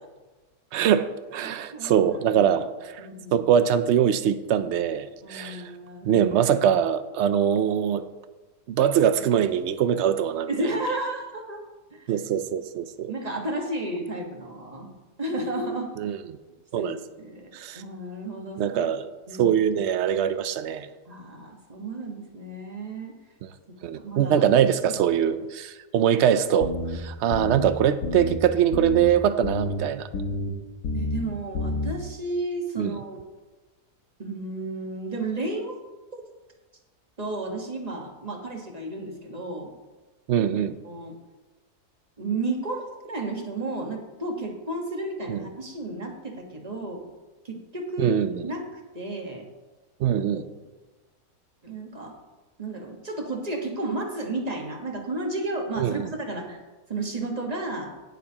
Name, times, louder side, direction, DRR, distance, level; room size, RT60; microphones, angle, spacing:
voice 1, 0.7-5.7 6.0-8.0 8.7-10.5 12.1-13.1 16.0-16.4 16.7-17.0 17.5-17.8 18.6-19.1 19.4-20.9 23.8-30.1 32.8-32.9 40.3-40.8 45.3-45.4 48.0-48.5 50.0-50.4 55.8-56.1, right 9 dB, 70° right, 12 dB, 0.6 m, -23 dB
voice 2, 1.4-2.6 3.0-3.5 5.2-6.3 10.5-11.6 11.9-12.1 13.1-15.9 16.8-18.8 19.3-19.6 21.1-23.1 24.0-24.4 24.8-25.0 30.9-33.2 34.2-35.8 36.1-36.2 37.2-39.8 40.8-41.2 42.2-47.0 47.4-48.2 48.4-49.5 51.6-52.2 52.6-56.6 56.9-57.9, right 2 dB, 25° right, 2 dB, 1.3 m, -32 dB
sound 1, 26.6-27.0 27.3-27.7 28.0-28.4 28.7-29.1 29.4-29.8 30.1-30.5 30.8-31.2 31.5-31.9, left 2 dB, 70° left, 1.6 m, -29 dB
19.0 x 6.7 x 2.9 m, 1.2 s
omnidirectional pair, 1.7 m